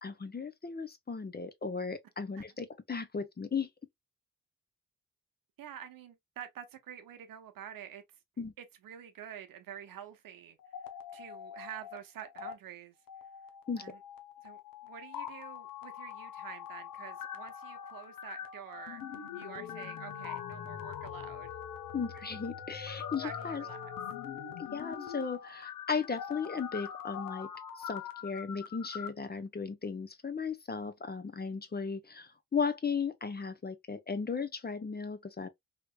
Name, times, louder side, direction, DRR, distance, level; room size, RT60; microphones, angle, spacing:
voice 1, 0.0-3.7 8.4-8.5 13.7-13.8 21.9-23.6 24.6-27.5 27.8-35.5, left 5 dB, 25° left, 0.7 m, -36 dB
voice 2, 5.6-8.0 8.6-10.6 11.1-13.0 13.8-14.0 14.4-19.0 19.3-21.5 23.2-23.9, right 9 dB, 70° right, 0.8 m, -47 dB
sound 1, 10.6-12.0 12.2-12.5 13.1-29.1, left 9 dB, 70° left, 0.8 m, -43 dB
3.4 x 2.9 x 2.3 m
supercardioid pair, 45°, 35 cm